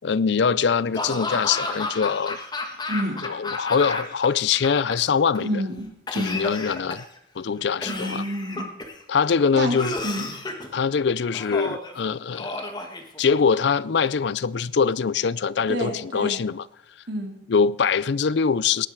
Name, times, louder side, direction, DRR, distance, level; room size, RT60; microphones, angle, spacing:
voice 1, 0.0-2.4 3.2-5.5 6.2-7.0 7.4-8.2 9.1-9.9 10.7-12.7 13.2-16.6 17.5-18.9, left 6 dB, 70° left, 0.5 m, -23 dB
Laughter / Cough, 0.9-4.3 4.5-5.4 6.1-7.2 7.8-9.0 9.7-10.7 11.3-11.9 12.3-13.6, left 2 dB, 25° left, 1.7 m, -32 dB
voice 2, 2.9-3.2 5.4-5.9 6.1-6.4 7.9-8.6 9.5-9.8 10.0-10.2 15.7-16.4 17.1-17.4, equal, 65° right, 3.4 m, -28 dB
18.5 x 11.0 x 4.8 m
head